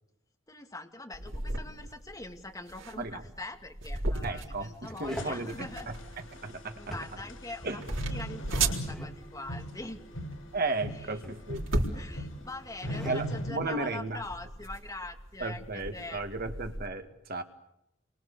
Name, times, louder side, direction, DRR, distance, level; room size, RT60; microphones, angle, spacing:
voice 1, 0.5-5.9 6.8-7.8 8.1-10.0 10.9-11.2 11.9-16.2, left 2 dB, 20° left, 4 dB, 2.3 m, -43 dB
sound 1, 1.1-16.9, right 2 dB, 75° right, 3.9 m, -37 dB
sound 2, 3.1-3.4 4.6-5.4 6.8-7.4 8.6-9.1 10.9-11.5 12.6-13.2, equal, ahead, 3.6 m, -43 dB
voice 2, 4.2-6.7 7.6-7.9 10.5-11.6 12.8-14.2 15.4-17.4, right 3 dB, 50° right, 6 dB, 2.1 m, -35 dB
sound 3, 5.0-13.6, equal, 85° left, 7.6 m, -40 dB
29.5 x 24.0 x 7.0 m, 0.83 s
head